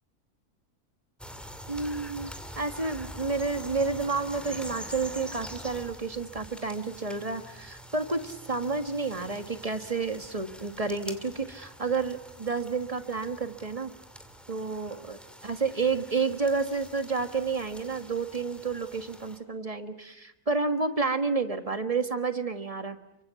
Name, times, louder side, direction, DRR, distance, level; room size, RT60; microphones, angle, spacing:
sound 1, 1.2-19.4, equal, ahead, 2.4 m, -45 dB
voice 1, 1.7-13.9 14.5-23.0, right 4 dB, 25° right, 9 dB, 1.4 m, -30 dB
29.0 x 24.0 x 8.2 m, 0.87 s
omnidirectional pair, 1.6 m